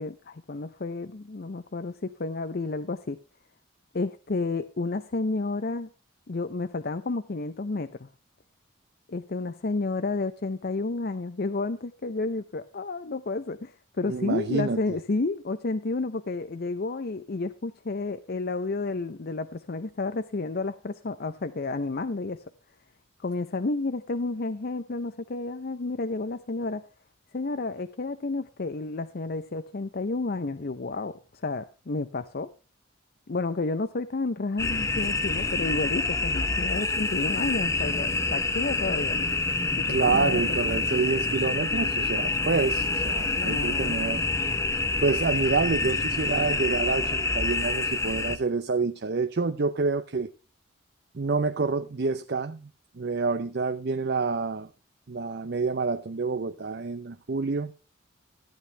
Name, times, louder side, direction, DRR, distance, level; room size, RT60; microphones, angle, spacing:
voice 1, 0.0-3.2 3.9-5.9 6.3-8.1 9.1-22.4 23.2-26.9 27.3-32.5 33.3-39.3 39.8-40.4 43.4-44.0, left 3 dB, 50° left, 0.6 m, -31 dB
voice 2, 14.1-14.8 39.9-44.2 45.0-50.3 51.1-52.7 53.0-54.7 55.1-57.7, right 4 dB, 55° right, 0.6 m, -27 dB
sound 1, 34.6-48.4, left 3 dB, 15° left, 0.7 m, -27 dB
14.0 x 10.5 x 3.3 m
head